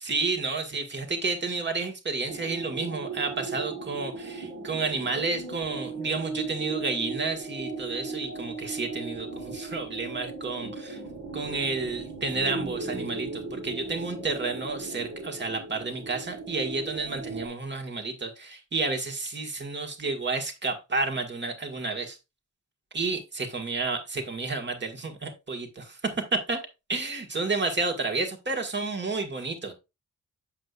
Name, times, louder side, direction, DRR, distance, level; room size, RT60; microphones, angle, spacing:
voice 1, 0.0-11.0 11.3-22.2 22.9-26.0 26.3-26.6 26.9-29.7, right 3 dB, 35° right, 3 dB, 1.7 m, -31 dB
sound 1, 2.3-17.5, right 3 dB, 60° right, 2.3 m, -37 dB
8.0 x 7.6 x 2.4 m, 0.25 s
wide cardioid pair, 170°, 32 cm